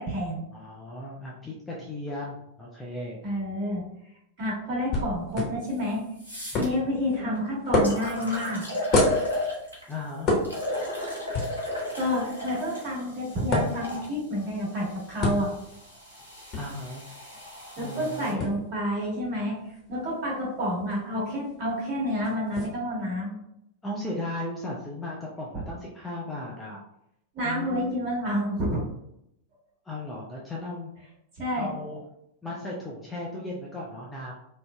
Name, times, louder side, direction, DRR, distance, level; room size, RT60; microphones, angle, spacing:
voice 1, 0.0-0.5 3.2-3.8 4.4-6.0 6.5-8.6 12.0-15.5 17.8-19.5 19.9-23.3 27.3-28.8 31.4-31.7, equal, 40° right, -5 dB, 1.4 m, -29 dB
voice 2, 0.5-3.2 9.9-10.3 16.5-17.1 17.8-18.5 23.8-26.8 27.4-27.8 29.8-30.9 31.6-32.0 32.4-34.3, left 2 dB, 10° left, -4 dB, 0.5 m, -36 dB
sound 1, 4.9-22.6, left 2 dB, 35° left, 0.9 m, -33 dB
sound 2, 5.7-5.8 6.2-6.7 7.4-7.5 7.8-9.9 10.4-14.1 14.9-18.3, left 1 dB, 80° right, 0.9 m, -35 dB
3.6 x 2.0 x 2.3 m, 0.78 s
figure-of-eight pair, 90°, 0 cm